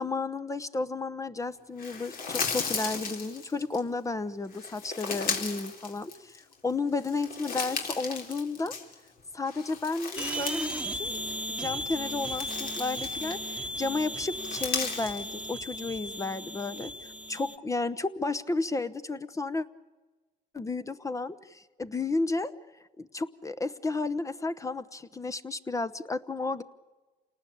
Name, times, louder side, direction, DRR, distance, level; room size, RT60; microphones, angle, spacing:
voice 1, 0.0-6.3 6.6-8.7 9.3-11.2 11.5-16.9 17.3-19.7 20.5-22.5 23.0-26.6, left 3 dB, 20° left, 13 dB, 0.9 m, -32 dB
sound 1, 1.8-3.8 4.5-6.5 6.9-9.1 9.4-10.9 11.2-11.3 11.9-13.6 14.3-15.2, left 5 dB, 60° left, 3.9 m, -35 dB
sound 2, 10.2-17.6, equal, 5° right, 1.4 m, -36 dB
28.0 x 19.0 x 8.6 m, 1.2 s
cardioid pair, 110°, 17 cm